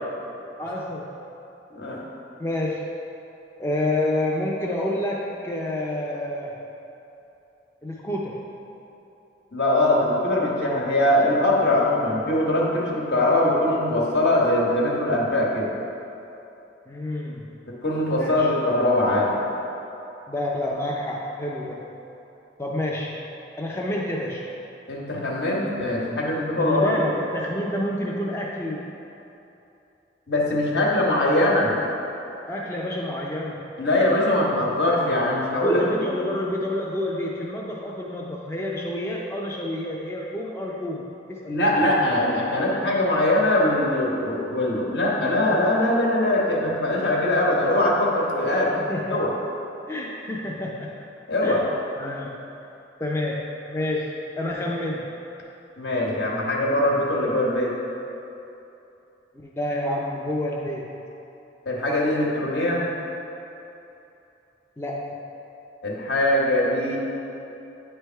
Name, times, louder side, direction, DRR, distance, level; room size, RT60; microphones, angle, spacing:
voice 1, 0.6-1.2 2.4-2.9 3.6-6.6 7.8-8.4 16.9-17.5 18.2-18.5 20.3-22.0 22.6-23.2 23.6-24.5 26.6-28.9 32.5-33.7 35.6-41.7 48.8-49.2 49.9-51.1 51.4-51.7 52.0-52.5 53.0-55.1 59.4-61.1 64.8-65.2, left 1 dB, 15° left, -3 dB, 0.4 m, -29 dB
voice 2, 1.7-2.0 9.5-15.7 17.8-19.5 24.9-27.0 30.3-31.7 33.8-36.1 41.5-48.7 49.1-49.3 51.3-51.6 55.8-57.7 61.6-62.8 65.8-67.0, left 1 dB, 65° left, -4 dB, 1.2 m, -22 dB
9.2 x 3.3 x 4.4 m, 2.9 s
head